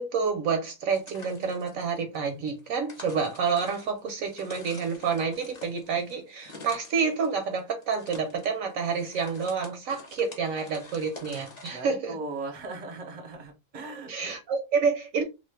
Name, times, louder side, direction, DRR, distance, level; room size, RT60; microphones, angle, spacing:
voice 1, 0.0-12.2 14.1-15.2, right 5 dB, 70° right, 0.9 m, -28 dB
sound 1, 0.9-11.8, left 3 dB, 35° left, 0.7 m, -48 dB
voice 2, 11.7-14.4, right 3 dB, 35° right, 0.6 m, -38 dB
2.5 x 2.4 x 3.3 m
omnidirectional pair, 1.6 m